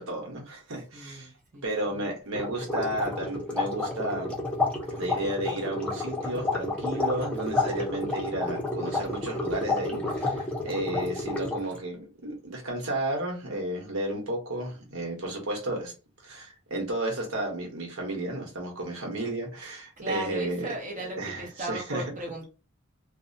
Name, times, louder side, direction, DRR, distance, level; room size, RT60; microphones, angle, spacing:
voice 1, 0.0-1.3 1.6-4.3 4.9-15.9 16.2-20.7 20.9-22.0, right 1 dB, 75° right, 1.1 m, -33 dB
voice 2, 0.9-2.1 20.0-22.5, right 2 dB, 40° right, 0.7 m, -37 dB
sound 1, 2.3-11.8, left 2 dB, 5° left, 0.6 m, -30 dB
2.6 x 2.1 x 2.6 m
head